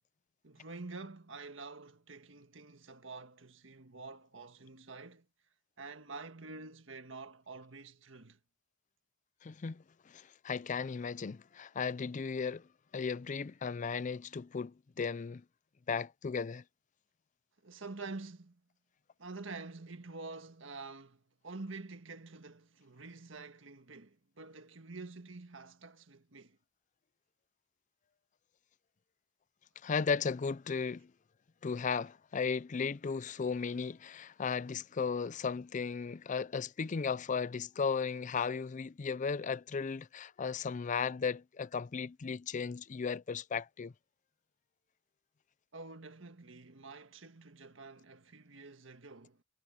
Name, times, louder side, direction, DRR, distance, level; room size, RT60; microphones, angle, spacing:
voice 1, 0.4-5.2 5.8-8.4 17.6-18.6 19.2-26.6 45.7-49.4, right 3 dB, 75° right, 1.7 m, -48 dB
voice 2, 9.4-12.7 12.9-15.4 15.9-16.6 29.8-31.1 31.6-43.9, left 5 dB, 40° left, 0.4 m, -35 dB
head